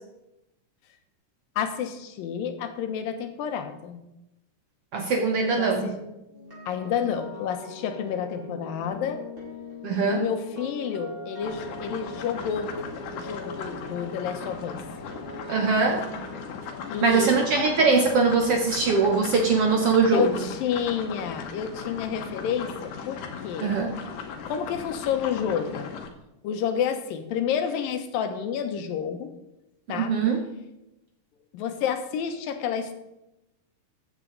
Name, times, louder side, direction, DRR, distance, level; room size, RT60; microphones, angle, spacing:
voice 1, 1.6-4.0 5.5-6.0 6.7-9.2 10.0-12.7 13.1-14.8 16.9-17.4 20.1-23.7 24.5-25.9 26.4-29.3 29.9-30.1 31.5-32.9, left 8 dB, 90° left, 7 dB, 2.8 m, -29 dB
voice 2, 4.9-5.9 9.8-10.2 15.5-16.0 17.0-20.3 23.6-23.9 29.9-30.4, right 4 dB, 65° right, 3 dB, 1.5 m, -22 dB
sound 1, 6.3-20.3 20.6-20.9, equal, 20° right, 4.9 m, -43 dB
sound 2, 11.4-26.1, left 6 dB, 70° left, 2.6 m, -38 dB
14.5 x 9.0 x 4.0 m, 0.90 s
omnidirectional pair, 3.9 m